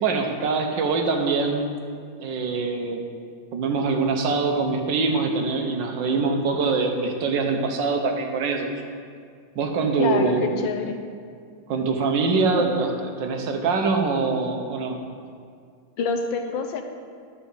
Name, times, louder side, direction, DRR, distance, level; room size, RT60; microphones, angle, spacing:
voice 1, 0.0-1.7 2.2-3.0 3.5-8.7 9.6-10.6 11.7-15.0, right 4 dB, 70° right, 3 dB, 1.6 m, -24 dB
voice 2, 10.0-11.0 12.6-12.7 16.0-16.8, left 5 dB, 75° left, 6 dB, 1.4 m, -27 dB
11.0 x 5.1 x 7.0 m, 2.2 s
omnidirectional pair, 2.1 m